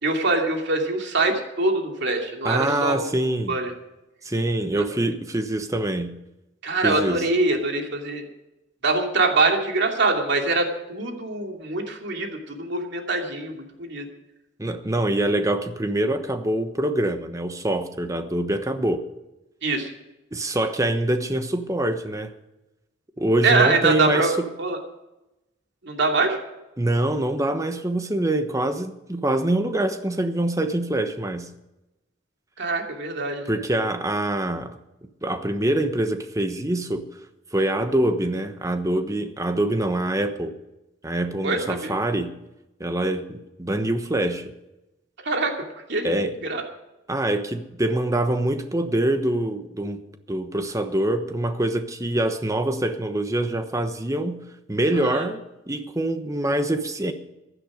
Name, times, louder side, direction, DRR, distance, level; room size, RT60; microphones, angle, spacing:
voice 1, 0.0-3.1 3.5-3.7 6.6-8.2 8.8-14.0 19.6-19.9 23.4-24.3 24.6-24.8 25.8-26.4 32.6-33.5 41.4-41.9 45.2-45.5 45.9-46.1 46.5-46.6 55.0-55.2, right 3 dB, 65° right, 2 dB, 2.7 m, -23 dB
voice 2, 2.4-3.6 4.2-6.2 6.8-7.3 14.6-19.0 20.3-22.3 23.2-24.5 26.8-31.5 33.5-34.8 35.2-37.1 37.5-40.5 41.0-42.3 42.8-44.5 46.0-46.4 47.1-50.0 50.3-57.1, right 1 dB, 15° right, 8 dB, 1.1 m, -25 dB
16.0 x 11.5 x 5.0 m, 0.96 s
head